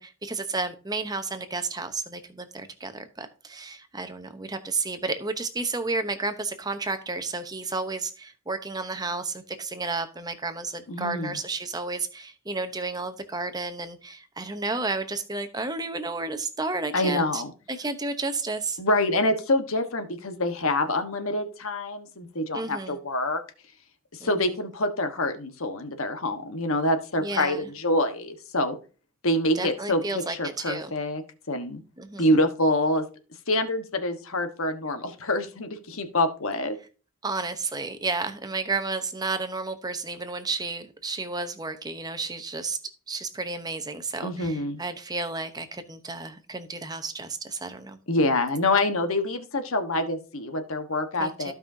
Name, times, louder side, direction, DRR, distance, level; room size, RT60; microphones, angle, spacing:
voice 1, 0.0-17.4 17.7-18.8 22.5-23.0 24.2-24.5 27.2-27.7 29.5-30.9 32.0-32.3 37.2-42.8 43.1-48.0 51.2-51.5, right 3 dB, 20° right, 9 dB, 0.8 m, -32 dB
voice 2, 10.9-11.4 16.9-17.5 18.8-23.4 24.2-28.8 29.2-31.2 31.5-31.8 32.2-33.0 33.5-36.8 44.2-44.8 48.1-51.5, left 1 dB, 70° left, 7 dB, 1.3 m, -26 dB
15.0 x 5.5 x 2.8 m, 0.36 s
head